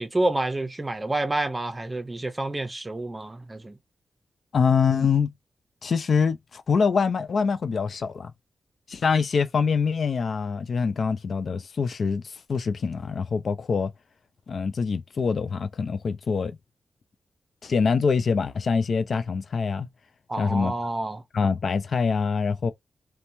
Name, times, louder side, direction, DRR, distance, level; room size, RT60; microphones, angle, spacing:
voice 1, 0.0-3.8 20.3-21.2, right 2 dB, 25° right, 0.6 m, -28 dB
voice 2, 4.5-5.3 5.8-8.3 8.9-13.9 14.5-16.6 17.6-19.9 20.4-20.7 21.3-22.7, left 5 dB, 65° left, 0.3 m, -24 dB
2.9 x 2.2 x 2.6 m
cardioid pair, 85°, 0 cm